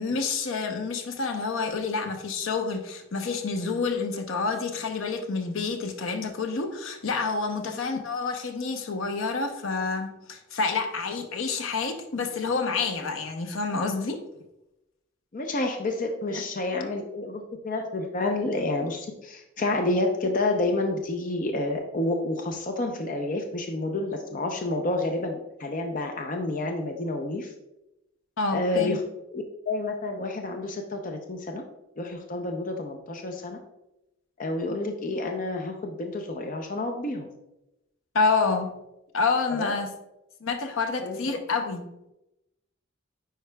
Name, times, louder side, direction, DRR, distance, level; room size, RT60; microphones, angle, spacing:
voice 1, 0.0-14.2 28.4-29.0 38.1-38.7 39.1-39.9 40.4-41.9, left 4 dB, 75° left, 6 dB, 0.7 m, -28 dB
voice 2, 15.3-27.5 28.5-29.0 29.3-31.6 32.0-33.6 34.4-37.3 39.5-39.7 41.0-41.2, left 2 dB, 40° left, 3 dB, 0.5 m, -29 dB
9.5 x 4.5 x 2.2 m, 0.91 s
head